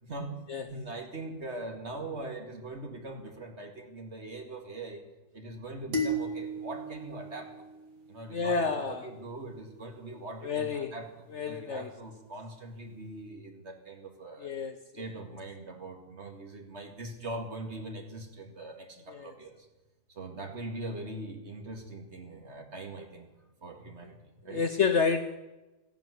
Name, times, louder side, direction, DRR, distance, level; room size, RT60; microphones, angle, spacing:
voice 1, 0.0-5.0 5.3-7.7 8.1-14.5 14.9-19.7 20.1-23.3 23.6-24.6, right 2 dB, 45° right, 4 dB, 2.4 m, -42 dB
sound 1, 5.9-8.4, right 1 dB, 85° right, 3.1 m, -35 dB
voice 2, 8.3-9.1 10.4-10.9 11.3-11.9 14.4-15.0 19.1-19.3 24.5-25.4, left 5 dB, 55° left, 8 dB, 1.0 m, -30 dB
15.5 x 11.0 x 8.3 m, 1.1 s
omnidirectional pair, 1.7 m